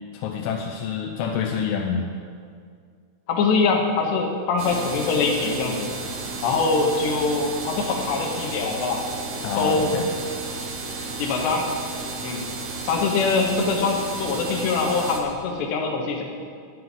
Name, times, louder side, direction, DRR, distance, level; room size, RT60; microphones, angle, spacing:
voice 1, 0.1-2.0 9.4-10.1, left 6 dB, 85° left, 1 dB, 3.5 m, -27 dB
voice 2, 3.3-5.9 6.4-9.0 9.6-9.9 11.2-11.7 12.2-12.4 12.9-16.2, left 4 dB, 70° left, 1 dB, 3.3 m, -23 dB
sound 1, 4.6-15.2, right 3 dB, 80° right, 1.6 m, -33 dB
12.5 x 7.8 x 9.6 m, 2.2 s
omnidirectional pair, 5.8 m